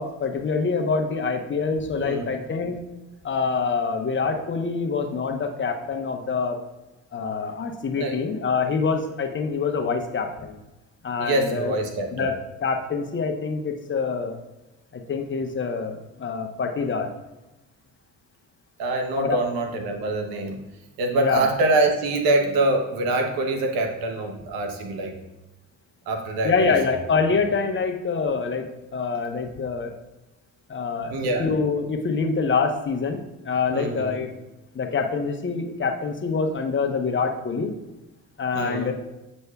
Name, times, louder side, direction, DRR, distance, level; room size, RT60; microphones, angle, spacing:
voice 1, 0.0-2.8 3.2-6.6 7.1-10.5 11.0-11.7 12.1-14.4 14.9-17.1 19.2-19.4 21.2-21.5 26.4-28.7 28.9-29.9 30.7-31.1 31.4-34.3 34.7-37.7 38.4-38.9, left 5 dB, 35° left, 4 dB, 0.9 m, -25 dB
voice 2, 1.9-2.3 8.0-8.2 11.2-12.3 18.8-20.6 21.0-25.1 26.1-26.7 31.1-31.5 33.7-34.2 38.5-38.9, right 2 dB, 80° right, 4 dB, 1.0 m, -25 dB
8.0 x 5.3 x 2.3 m, 1.0 s
supercardioid pair, 60°, 35 cm